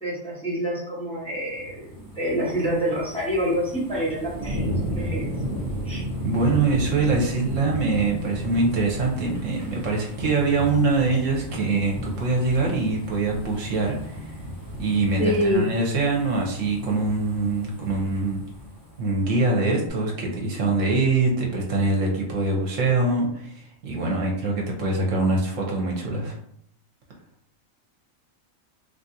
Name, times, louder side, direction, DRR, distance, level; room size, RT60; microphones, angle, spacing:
voice 1, 0.0-1.8 2.1-5.3 5.8-6.0 15.2-15.7, equal, 5° left, -8 dB, 0.9 m, -26 dB
sound 1, 1.3-19.4 19.9-20.0, equal, 25° right, 0.5 m, -34 dB
voice 2, 6.2-14.2 14.8-18.4 19.0-26.4, right 3 dB, 70° right, -1 dB, 1.1 m, -24 dB
3.4 x 2.4 x 2.7 m, 0.67 s
omnidirectional pair, 1.4 m